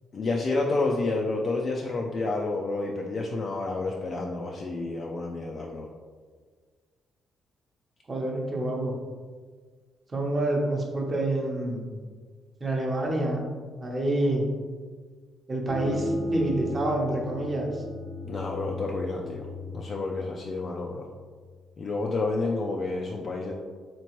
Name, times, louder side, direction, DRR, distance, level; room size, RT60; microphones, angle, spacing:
voice 1, 0.1-5.9 18.3-19.5 19.7-21.1 21.8-23.5, left 3 dB, 45° left, -1 dB, 0.3 m, -29 dB
voice 2, 8.1-8.9 10.1-11.9 12.6-13.4 13.8-14.5 15.5-17.8, right 1 dB, 30° right, -1 dB, 0.8 m, -27 dB
sound 1, 15.7-21.1, equal, 80° left, 0.8 m, -35 dB
3.4 x 2.9 x 3.0 m, 1.6 s
cardioid pair, 90°, 0 cm